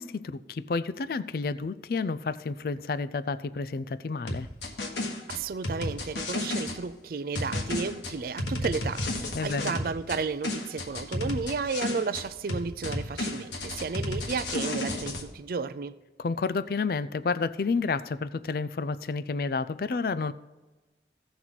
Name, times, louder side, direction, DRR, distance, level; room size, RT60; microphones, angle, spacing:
voice 1, 0.0-4.5 9.3-9.7 16.2-20.3, left 4 dB, 55° left, 0.4 m, -30 dB
sound 1, 4.3-6.8 7.3-10.2 10.4-12.2 12.5-15.2, left 1 dB, 80° left, 1.5 m, -32 dB
voice 2, 5.3-15.9, right 4 dB, 50° right, 0.4 m, -33 dB
16.0 x 6.0 x 4.1 m
head